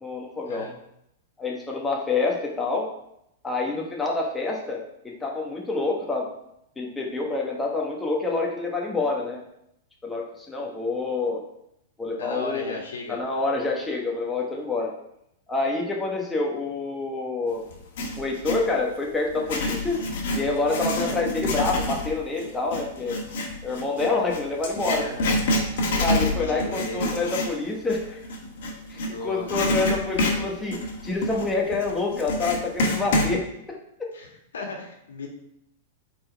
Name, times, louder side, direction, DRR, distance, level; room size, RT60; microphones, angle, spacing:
voice 1, 0.0-0.7 1.4-2.9 3.4-6.3 6.8-9.4 10.0-11.4 12.0-12.8 13.1-14.9 15.5-17.6 18.2-20.0 20.3-23.2 23.6-25.1 26.0-28.3 28.9-34.1, left 3 dB, 10° left, -1 dB, 1.3 m, -27 dB
voice 2, 12.2-13.2 25.0-25.3 25.8-27.1 28.9-29.5 34.1-34.3 34.5-35.3, left 3 dB, 85° left, 1 dB, 1.6 m, -35 dB
Writing, 17.7-18.7 19.3-29.1 29.5-33.3, left 1 dB, 65° left, 1.5 m, -27 dB
8.5 x 4.0 x 3.4 m, 0.78 s
hypercardioid pair, 130°, 0 cm